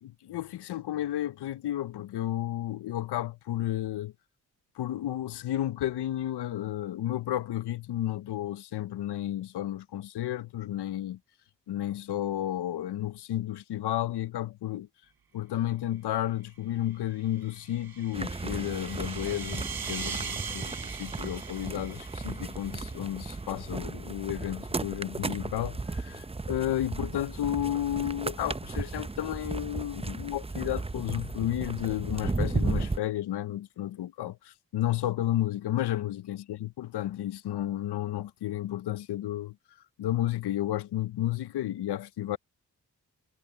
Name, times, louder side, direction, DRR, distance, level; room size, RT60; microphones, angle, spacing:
voice 1, 0.0-4.1 4.8-11.2 11.7-14.9 15.3-39.6 40.0-42.4, left 13 dB, 80° left, 0.8 m, -32 dB
sound 1, 17.2-22.8, right 6 dB, 65° right, 6.5 m, -41 dB
sound 2, 18.1-33.0, right 3 dB, 15° right, 0.7 m, -35 dB
supercardioid pair, 40°, 39 cm